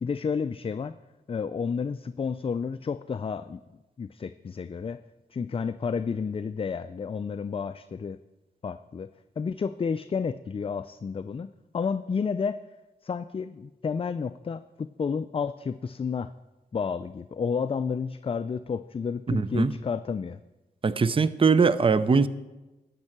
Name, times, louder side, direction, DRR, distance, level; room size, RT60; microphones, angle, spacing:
voice 1, 0.0-1.0 1.3-3.6 4.0-5.0 5.3-8.2 8.6-9.1 9.4-12.6 13.0-16.3 16.7-20.4, left 5 dB, 30° left, 0.3 m, -31 dB
voice 2, 19.3-19.7 20.8-22.3, right 5 dB, 30° right, 0.5 m, -21 dB
12.0 x 5.4 x 7.4 m
cardioid pair, 60°, 18 cm